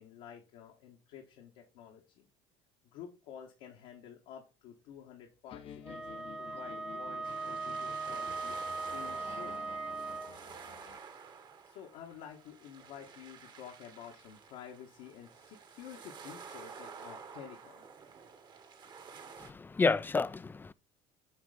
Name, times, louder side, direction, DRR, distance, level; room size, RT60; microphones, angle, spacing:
voice 1, 0.0-2.3 2.8-8.6 8.8-9.7 11.6-17.9, left 9 dB, 75° left, 1.5 m, -50 dB
sound 1, 5.5-11.0, left 7 dB, 45° left, 0.8 m, -51 dB
Wind instrument woodwind instrument, 5.8-10.4, right 4 dB, 5° right, 0.8 m, -39 dB
sound 2, 7.2-19.5, right 6 dB, 35° right, 1.2 m, -51 dB
voice 2, 19.4-20.7, left 4 dB, 15° left, 0.4 m, -30 dB
8.2 x 3.3 x 5.1 m
supercardioid pair, 105°, 13 cm